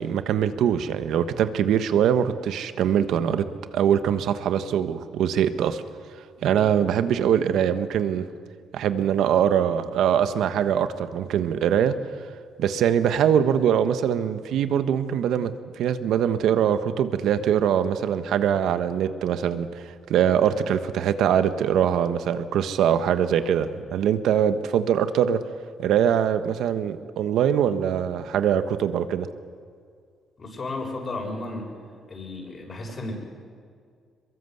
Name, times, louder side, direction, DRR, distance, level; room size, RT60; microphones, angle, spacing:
voice 1, 0.0-3.4 3.7-5.8 6.4-8.2 8.7-11.9 12.6-15.5 15.8-19.8 20.1-25.4 25.8-29.3, right 9 dB, 80° right, 11 dB, 1.3 m, -22 dB
voice 2, 30.4-31.7 32.1-33.2, left 2 dB, 40° left, 1 dB, 7.1 m, -33 dB
23.5 x 22.0 x 8.0 m, 2.1 s
cardioid pair, 90°, 0 cm